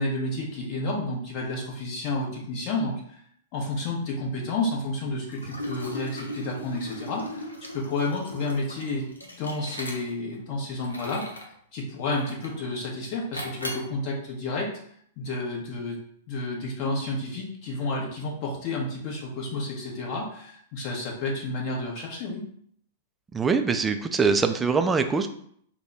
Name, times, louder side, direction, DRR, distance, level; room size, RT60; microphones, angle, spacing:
voice 1, 0.0-3.2 3.5-7.4 7.7-11.3 11.7-14.7 15.2-16.0 16.3-22.4, left 2 dB, 40° left, -2 dB, 1.1 m, -30 dB
Liquid, 5.3-10.3 10.8-11.5 12.1-12.6 13.3-13.9, left 1 dB, 85° left, 0.7 m, -38 dB
voice 2, 23.3-25.3, right 5 dB, 15° right, 7 dB, 0.3 m, -23 dB
3.4 x 2.2 x 4.0 m, 0.65 s
figure-of-eight pair, 100°, 0 cm